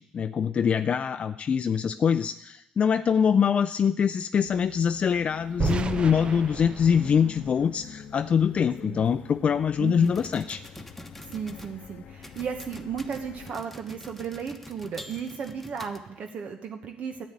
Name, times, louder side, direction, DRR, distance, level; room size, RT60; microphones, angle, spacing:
voice 1, 0.0-10.6, left 7 dB, 45° left, 10 dB, 0.4 m, -24 dB
sound 1, 4.4-13.5, left 8 dB, 65° left, 0.8 m, -46 dB
sound 2, 5.6-8.6, right 5 dB, 40° right, 0.6 m, -33 dB
voice 2, 9.8-10.1 11.2-17.2, right 6 dB, 60° right, 5 dB, 1.1 m, -35 dB
sound 3, 10.0-11.7 12.2-16.3, equal, 5° left, 1.3 m, -45 dB
10.5 x 9.5 x 8.9 m, 0.83 s
cardioid pair, 90°, 3 cm